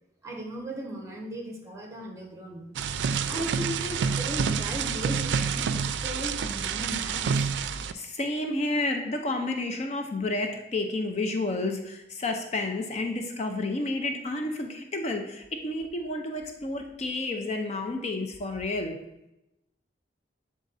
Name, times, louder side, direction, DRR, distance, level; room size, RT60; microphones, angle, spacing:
voice 1, 0.2-2.7 3.2-7.3, equal, 20° right, 1 dB, 1.0 m, -37 dB
sound 1, 2.8-7.9, right 6 dB, 90° right, 0.4 m, -28 dB
voice 2, 7.9-19.0, left 2 dB, 40° left, 4 dB, 0.5 m, -30 dB
7.2 x 3.7 x 4.0 m, 0.90 s
head